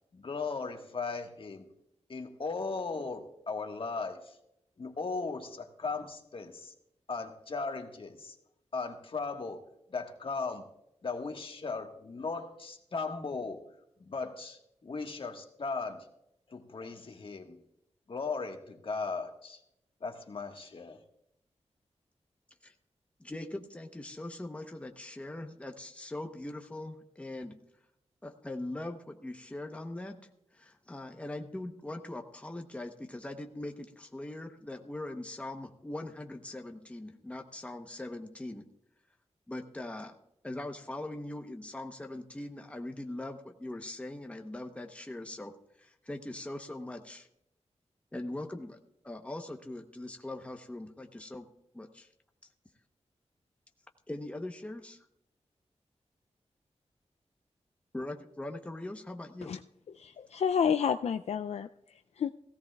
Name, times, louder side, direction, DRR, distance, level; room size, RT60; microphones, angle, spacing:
voice 1, 0.1-1.7 2.1-4.4 4.8-6.7 7.1-8.3 8.7-9.6 9.9-10.7 11.0-13.6 14.1-16.1 16.5-17.6 18.1-19.6 20.0-21.0, left 4 dB, 50° left, 4 dB, 1.5 m, -37 dB
voice 2, 23.2-27.6 28.2-30.2 30.5-38.7 39.5-40.2 40.4-47.3 48.1-48.8 49.0-51.5 51.7-52.1 54.1-55.0 57.9-59.5, left 1 dB, 10° left, 4 dB, 0.9 m, -41 dB
voice 3, 60.0-61.7 62.2-62.3, left 7 dB, 65° left, 8 dB, 0.4 m, -29 dB
17.5 x 16.0 x 2.3 m, 0.80 s
wide cardioid pair, 145°, 12 cm